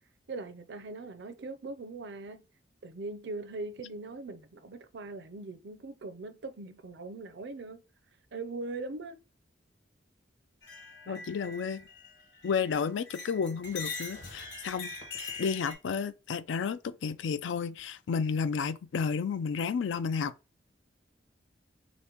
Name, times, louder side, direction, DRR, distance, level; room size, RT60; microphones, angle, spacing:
voice 1, 0.3-2.4 2.8-7.8 8.3-9.2 11.1-11.3, right 3 dB, 65° right, 0.5 m, -41 dB
sound 1, 10.6-12.7 13.1-15.7, left 4 dB, 70° left, 1.4 m, -42 dB
voice 2, 11.1-11.8 12.4-14.9 15.4-20.3, left 6 dB, 90° left, 0.4 m, -32 dB
5.1 x 2.1 x 2.8 m
head